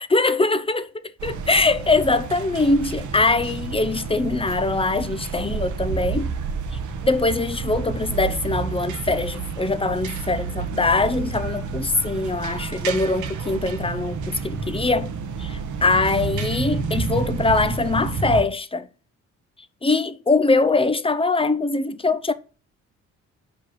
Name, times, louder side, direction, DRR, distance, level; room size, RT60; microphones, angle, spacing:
voice 1, 0.0-6.3 7.0-15.1 15.4-18.9 19.8-22.3, left 3 dB, 20° left, 0.8 m, -22 dB
sound 1, 1.2-18.4, right 5 dB, 75° right, 1.1 m, -30 dB
6.1 x 5.3 x 6.1 m
cardioid pair, 90°, 30 cm